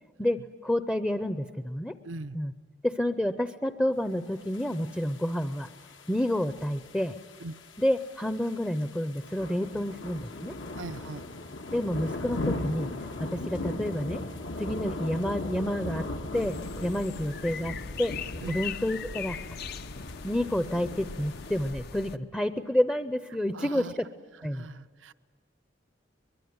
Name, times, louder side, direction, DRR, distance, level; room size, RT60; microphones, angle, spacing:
voice 1, 0.2-1.9 2.3-2.5 2.8-5.7 6.1-7.2 7.8-10.5 11.7-12.9 13.2-14.2 14.6-16.1 16.3-18.1 18.5-19.4 20.2-24.1 24.4-24.7, left 1 dB, 10° left, 10 dB, 0.6 m, -29 dB
voice 2, 2.0-2.4 7.4-7.5 10.8-11.2 18.4-18.6 23.5-23.9 24.5-25.1, right 2 dB, 80° right, 14 dB, 0.7 m, -40 dB
sound 1, 4.5-21.7, left 2 dB, 80° left, 1.6 m, -38 dB
sound 2, 16.3-22.2, left 6 dB, 55° left, 0.7 m, -40 dB
23.5 x 22.0 x 9.5 m, 1.5 s
head